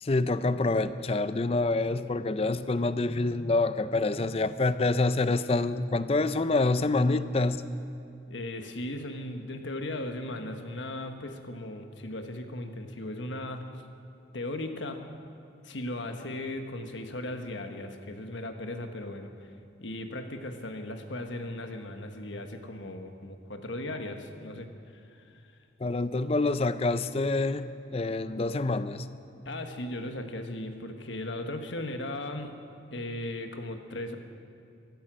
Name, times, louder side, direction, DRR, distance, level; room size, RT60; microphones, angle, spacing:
voice 1, 0.0-7.6 25.8-29.2, left 2 dB, 35° left, 13 dB, 0.4 m, -27 dB
voice 2, 8.3-13.6 14.3-15.0 15.6-19.5 19.8-24.7 25.0-25.2 29.4-32.5 32.9-34.2, left 1 dB, 90° left, 6 dB, 1.3 m, -37 dB
15.5 x 13.5 x 6.2 m, 2.5 s
head